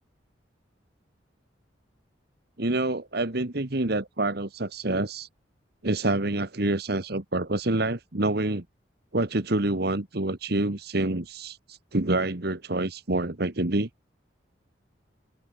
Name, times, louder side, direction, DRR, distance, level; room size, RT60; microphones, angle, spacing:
voice 1, 2.6-5.3 5.8-8.6 9.1-13.9, right 2 dB, 60° right, 1.7 m, -27 dB
open air
head